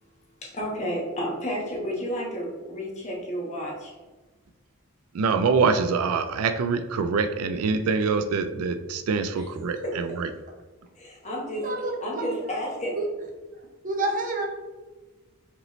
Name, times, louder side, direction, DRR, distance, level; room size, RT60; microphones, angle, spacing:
voice 1, 0.4-3.9 9.4-9.5 9.8-9.9 11.0-13.0, equal, 35° left, 1.1 m, -31 dB
voice 2, 5.1-10.3, right 5 dB, 85° right, 0.3 m, -25 dB
voice 3, 13.8-14.5, right 2 dB, 40° right, 0.7 m, -28 dB
5.1 x 3.1 x 3.0 m
head